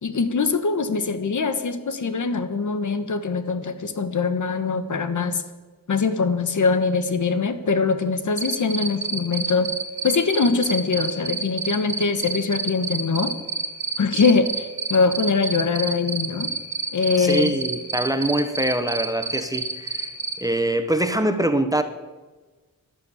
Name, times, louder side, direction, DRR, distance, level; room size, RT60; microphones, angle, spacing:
voice 1, 0.0-5.4 5.9-9.7 10.0-13.3 14.0-16.5 16.9-17.5, left 4 dB, 60° left, 10 dB, 1.3 m, -22 dB
Cricket, 8.4-20.3, right 5 dB, 35° right, 2.4 m, -27 dB
voice 2, 17.2-21.8, right 1 dB, 10° right, 8 dB, 0.8 m, -24 dB
12.5 x 11.5 x 8.4 m, 1.3 s
wide cardioid pair, 160°, 35 cm